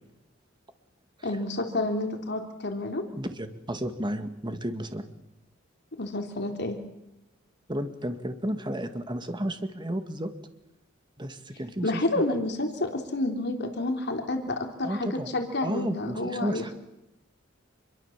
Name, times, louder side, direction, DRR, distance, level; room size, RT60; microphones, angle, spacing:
voice 1, 1.2-3.0 6.0-6.8 11.8-16.7, left 2 dB, 55° left, 4 dB, 3.5 m, -29 dB
voice 2, 3.1-5.1 7.7-10.3 11.2-12.2 14.8-15.3 15.6-16.7, right 1 dB, 25° right, 8 dB, 2.0 m, -32 dB
27.5 x 22.5 x 7.4 m, 0.90 s
head